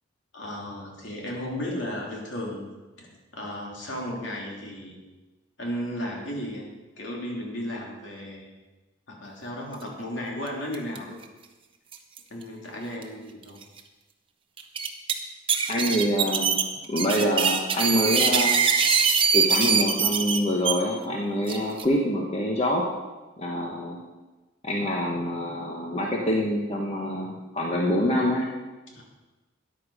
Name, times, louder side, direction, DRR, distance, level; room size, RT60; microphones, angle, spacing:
voice 1, 0.3-2.7 3.0-5.0 5.6-6.7 7.0-8.5 9.1-11.2 12.3-13.6 28.9-29.0, equal, 65° left, -2 dB, 3.1 m, -34 dB
sound 1, 10.7-11.0 11.2-11.3 11.9-12.2 13.0-13.1 13.6-13.7 14.6-15.1 15.5-20.7 21.5-21.8, right 6 dB, 25° right, 0.9 m, -23 dB
voice 2, 15.7-16.6 16.9-18.6 19.3-22.9 23.4-24.0 24.6-28.5, equal, 30° left, -1 dB, 1.2 m, -25 dB
13.5 x 10.0 x 5.0 m, 1.2 s
head